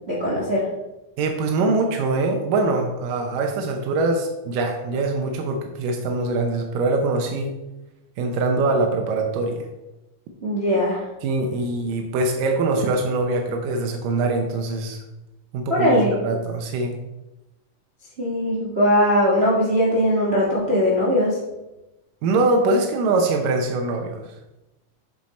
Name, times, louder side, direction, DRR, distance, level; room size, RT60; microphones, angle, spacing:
voice 1, 0.1-0.7 10.4-11.1 15.7-16.1 18.2-21.4, equal, 55° right, -5 dB, 0.7 m, -20 dB
voice 2, 1.2-7.5 8.2-9.7 11.2-15.0 15.5-16.9 22.2-24.3, right 2 dB, 80° right, 2 dB, 2.5 m, -23 dB
7.6 x 6.2 x 4.2 m, 0.98 s
omnidirectional pair, 3.9 m